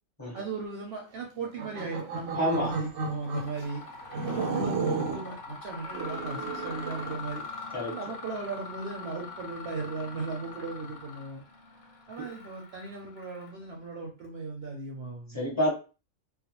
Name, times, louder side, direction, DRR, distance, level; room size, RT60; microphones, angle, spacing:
voice 1, 0.3-3.8 4.2-7.4 7.9-11.4 12.1-15.5, right 4 dB, 65° right, 0 dB, 0.7 m, -37 dB
sound 1, 1.4-3.5 4.1-5.3 5.8-7.2, right 4 dB, 85° right, 1.0 m, -33 dB
voice 2, 2.3-2.7 4.3-4.5 7.7-8.0 12.2-12.3 15.3-15.7, equal, 15° left, -4 dB, 0.8 m, -28 dB
Mechanisms, 2.5-2.9 3.2-13.8, left 4 dB, 50° left, 0.8 m, -43 dB
2.3 x 2.2 x 2.8 m, 0.33 s
omnidirectional pair, 1.3 m